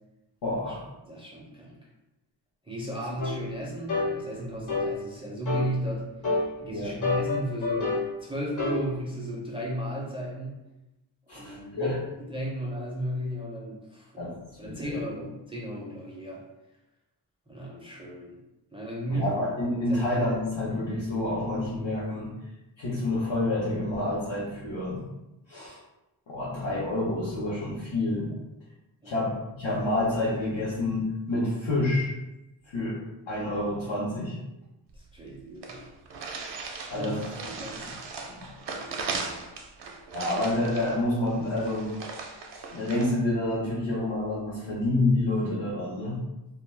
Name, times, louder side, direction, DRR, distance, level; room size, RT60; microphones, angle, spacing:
voice 1, 0.4-0.8 6.7-6.9 11.3-11.9 14.2-14.3 14.6-14.9 19.1-22.3 22.8-25.0 25.5-25.8 26.3-28.3 29.0-32.1 32.7-33.0 33.3-34.4 36.9-37.2 37.8-37.9 38.4-38.5 40.1-41.9 42.7-46.2, left 2 dB, 80° left, -8 dB, 0.8 m, -28 dB
voice 2, 1.0-1.8 2.7-6.1 6.6-10.5 11.3-16.4 17.5-18.4 18.7-19.3 19.7-20.0 29.0-29.2 34.9-35.9 36.9-37.1 37.4-37.8, equal, 15° right, -4 dB, 0.4 m, -34 dB
sound 1, 3.2-3.4 3.9-4.1 4.7-4.9 5.5-5.7 6.2-6.5 7.0-8.1 8.6-8.8, left 3 dB, 45° left, 0.6 m, -27 dB
sound 2, 34.9-35.0 35.2-35.3 35.6-43.1, right 4 dB, 70° right, 0.5 m, -38 dB
2.3 x 2.2 x 3.2 m, 0.96 s
wide cardioid pair, 120°, 44 cm